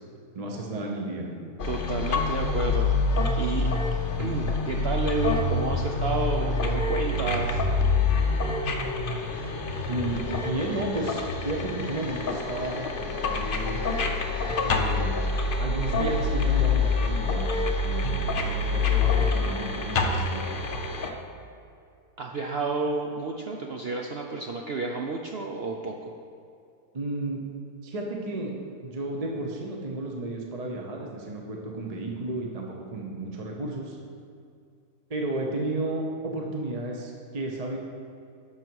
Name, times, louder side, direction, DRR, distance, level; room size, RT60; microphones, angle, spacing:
voice 1, 0.3-1.3 9.9-13.9 14.6-15.2 15.6-17.5 17.8-20.4 26.9-27.4 27.8-28.5 28.8-34.0 35.1-37.8, right 2 dB, 30° right, 0 dB, 0.8 m, -33 dB
voice 2, 1.4-2.9 3.3-3.7 4.2-7.6 22.2-26.2, right 3 dB, 65° right, 1 dB, 0.6 m, -31 dB
sound 1, 1.6-21.1, left 3 dB, 45° left, 0.7 m, -26 dB
11.0 x 6.5 x 4.7 m, 2.4 s
omnidirectional pair, 1.8 m